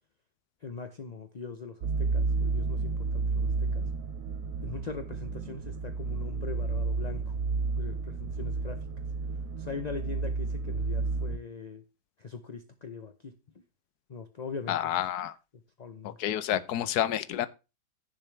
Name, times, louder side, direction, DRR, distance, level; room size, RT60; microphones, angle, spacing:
voice 1, 0.6-3.9 4.6-7.3 7.8-8.8 9.6-11.8 12.2-13.4 14.1-14.9 15.8-16.2, left 5 dB, 40° left, 0.6 m, -41 dB
sound 1, 1.8-11.4, right 4 dB, 65° right, 1.0 m, -31 dB
voice 2, 14.7-15.3 16.0-17.5, left 11 dB, 70° left, 1.3 m, -29 dB
15.5 x 7.2 x 3.3 m
omnidirectional pair, 1.8 m